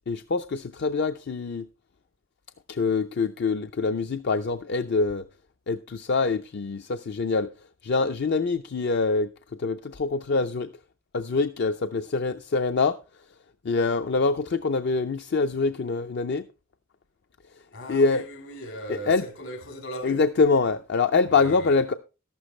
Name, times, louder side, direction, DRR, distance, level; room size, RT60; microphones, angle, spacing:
voice 1, 0.1-1.7 2.7-5.2 5.7-7.5 7.8-9.3 9.6-10.7 11.1-13.0 13.6-16.5 17.9-18.2 18.9-19.2 20.0-21.9, left 4 dB, 55° left, 0.5 m, -24 dB
voice 2, 17.7-20.2 21.3-21.8, equal, 80° left, 4.8 m, -38 dB
13.5 x 11.5 x 3.2 m
head